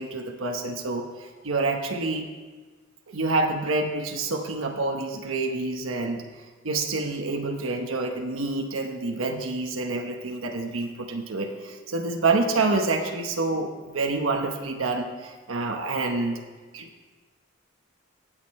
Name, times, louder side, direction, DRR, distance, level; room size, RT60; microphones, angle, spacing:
voice 1, 0.0-2.3 3.1-6.2 6.6-16.4 16.7-16.9, right 3 dB, 90° right, 3 dB, 1.0 m, -27 dB
17.5 x 6.6 x 4.2 m, 1.4 s
head